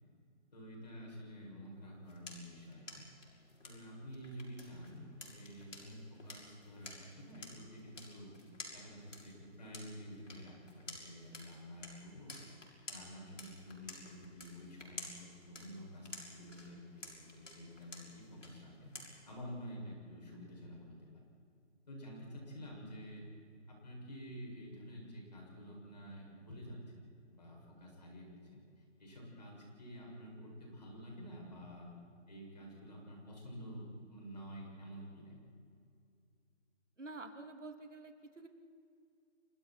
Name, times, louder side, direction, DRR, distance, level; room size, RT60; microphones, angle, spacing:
voice 1, 0.5-3.0 3.6-8.3 8.7-12.4 12.9-18.9 19.3-21.1 21.9-23.2 23.7-28.3 28.5-28.6 29.0-31.9 32.3-33.8 34.1-35.4, equal, 35° left, -2 dB, 7.1 m, -50 dB
sound 1, 1.7-19.4, left 2 dB, 85° left, 6.7 m, -53 dB
voice 2, 37.0-38.5, right 2 dB, 80° right, 6 dB, 2.9 m, -48 dB
29.5 x 25.0 x 4.6 m, 2.4 s
figure-of-eight pair, 180°, 36 cm